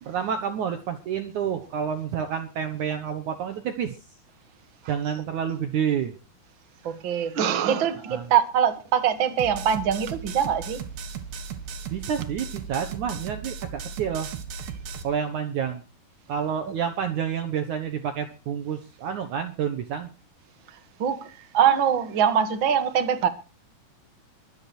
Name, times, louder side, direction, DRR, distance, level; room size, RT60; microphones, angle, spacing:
voice 1, 0.0-4.0 4.9-6.1 8.1-8.3 11.9-14.3 15.0-15.8 16.3-20.1, right 8 dB, 60° right, 2.3 m, -29 dB
voice 2, 6.8-10.8 21.0-23.3, right 8 dB, 40° right, 2.0 m, -23 dB
sound 1, 9.4-15.0, right 6 dB, 85° right, 3.8 m, -36 dB
23.0 x 8.8 x 4.5 m
omnidirectional pair, 4.5 m